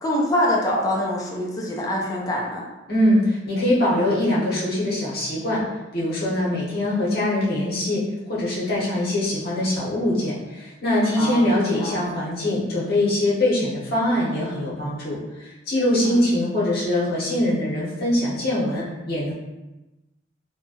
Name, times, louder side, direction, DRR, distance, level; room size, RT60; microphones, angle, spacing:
voice 1, 0.0-2.6 11.2-11.5 11.7-12.0 16.0-16.2, left 1 dB, 20° left, -3 dB, 0.4 m, -24 dB
voice 2, 2.9-5.6 5.9-19.3, left 1 dB, 55° left, -7 dB, 0.8 m, -23 dB
2.7 x 2.2 x 2.7 m, 1.0 s
head